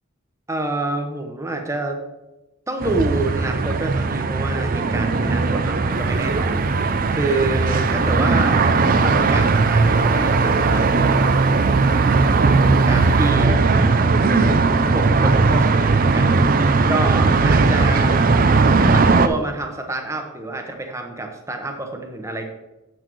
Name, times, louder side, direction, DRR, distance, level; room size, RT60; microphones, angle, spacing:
voice 1, 0.5-2.0 2.7-8.7 9.0-11.2 11.8-12.2 12.9-13.6 14.2-14.6 14.9-18.3 18.8-22.4, right 2 dB, 15° right, 3 dB, 0.9 m, -28 dB
sound 1, 2.8-19.3, right 4 dB, 40° right, 0.4 m, -18 dB
sound 2, 5.9-13.3, right 1 dB, 65° right, 1.6 m, -40 dB
8.3 x 6.2 x 4.6 m, 1.0 s
head